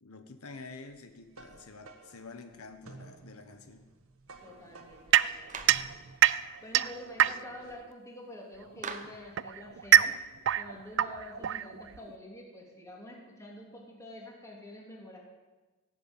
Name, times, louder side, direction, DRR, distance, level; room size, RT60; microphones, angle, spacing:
voice 1, 0.0-3.9, left 3 dB, 85° left, 7 dB, 1.2 m, -48 dB
sound 1, 0.9-6.4, right 3 dB, 75° right, 1.6 m, -53 dB
voice 2, 4.4-6.3 6.6-10.2 10.5-15.2, left 1 dB, 15° left, -2 dB, 3.2 m, -47 dB
sound 2, 5.1-7.7 8.7-12.1, right 11 dB, 55° right, 0.4 m, -26 dB
Clapping, 5.5-5.9 8.8-9.3, right 5 dB, 35° right, 1.1 m, -40 dB
17.0 x 7.7 x 9.2 m, 1.2 s
head